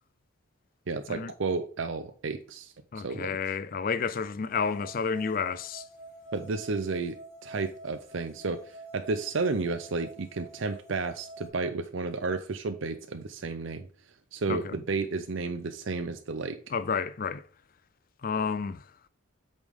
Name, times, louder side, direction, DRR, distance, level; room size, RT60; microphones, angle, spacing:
voice 1, 0.9-2.7 3.0-3.4 6.3-13.9 14.3-16.6, right 3 dB, 60° right, 0.6 m, -32 dB
voice 2, 2.9-5.8 14.5-14.8 16.7-17.5 18.2-18.8, left 5 dB, 40° left, 0.4 m, -30 dB
sound 1, 4.5-11.5, right 2 dB, 60° left, 4.1 m, -48 dB
8.3 x 5.2 x 3.6 m
head